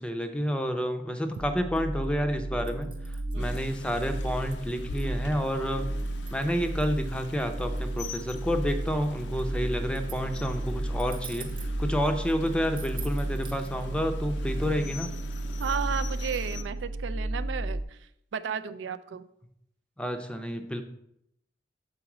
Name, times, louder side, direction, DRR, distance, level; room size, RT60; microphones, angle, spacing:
voice 1, 0.0-5.9 6.3-15.1 20.0-20.8, equal, 5° left, 6 dB, 0.5 m, -30 dB
sound 1, 1.3-13.8, right 8 dB, 30° right, 0.8 m, -49 dB
sound 2, 1.4-17.8, right 1 dB, 90° right, 0.9 m, -33 dB
Rain, 3.4-16.6, left 4 dB, 65° left, 0.5 m, -45 dB
voice 2, 15.6-19.3, right 7 dB, 75° right, 11 dB, 0.4 m, -34 dB
7.2 x 4.0 x 4.9 m, 0.76 s
head